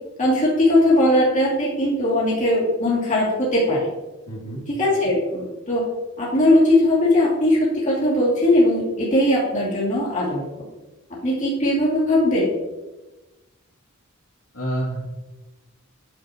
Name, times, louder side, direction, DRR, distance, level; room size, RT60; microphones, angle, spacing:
voice 1, 0.2-3.9 4.7-5.9 6.2-10.4 11.2-12.5, left 1 dB, 35° left, -7 dB, 2.6 m, -19 dB
voice 2, 4.3-4.6 14.5-15.0, right 1 dB, 85° left, -4 dB, 2.6 m, -28 dB
9.1 x 7.5 x 2.9 m, 1.1 s
head